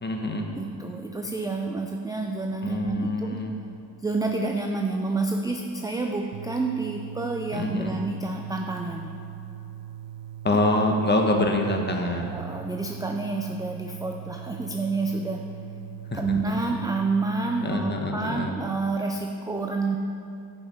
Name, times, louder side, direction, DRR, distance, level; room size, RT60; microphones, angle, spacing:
voice 1, 0.0-0.5 2.6-3.6 7.5-7.9 10.4-12.4 16.1-16.2 16.4-16.5 17.6-18.5, left 1 dB, 20° left, 2 dB, 1.3 m, -25 dB
voice 2, 0.6-3.4 4.0-9.1 12.3-15.4 16.1-20.0, right 3 dB, 10° right, 2 dB, 0.4 m, -29 dB
sound 1, 6.3-17.8, right 11 dB, 75° right, 0.6 m, -40 dB
10.5 x 5.3 x 5.5 m, 2.6 s
supercardioid pair, 80°, 47 cm